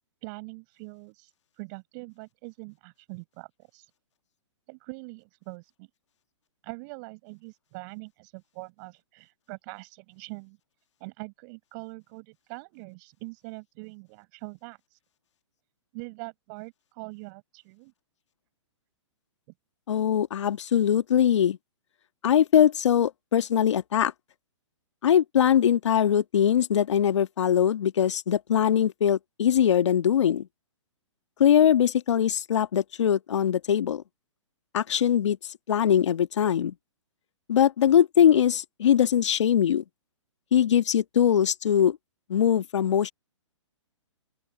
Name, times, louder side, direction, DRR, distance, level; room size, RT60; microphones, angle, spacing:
voice 1, 0.2-1.3 1.6-3.5 3.7-3.8 4.7-5.9 6.6-10.6 11.0-14.8 15.9-17.9, right 31 dB, 40° right, 7.5 m, -43 dB
voice 2, 19.9-21.6 22.2-24.1 25.0-30.5 31.4-34.0 34.7-35.4 35.7-36.7 37.5-39.8 40.5-42.0 42.3-43.1, left 9 dB, 65° left, 1.6 m, -22 dB
open air
hypercardioid pair, 130°, 16 cm